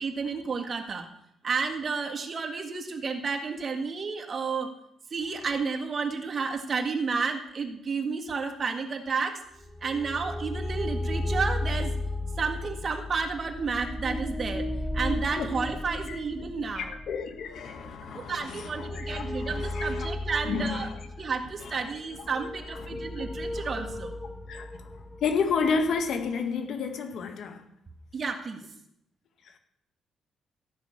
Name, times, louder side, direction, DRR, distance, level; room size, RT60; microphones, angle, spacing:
voice 1, 0.0-1.1 1.4-4.7 5.1-9.4 9.8-11.9 12.4-14.7 14.9-16.9 18.1-20.9 21.2-24.1 28.1-28.6, right 5 dB, 40° right, 1.9 m, -31 dB
sound 1, 9.6-26.3, left 1 dB, 5° left, 0.9 m, -35 dB
voice 2, 16.8-20.1 20.4-21.0 21.6-21.8 22.8-23.6 24.5-27.7 29.4-29.6, left 5 dB, 65° left, 2.0 m, -32 dB
14.0 x 6.0 x 8.7 m
cardioid pair, 90°, 0 cm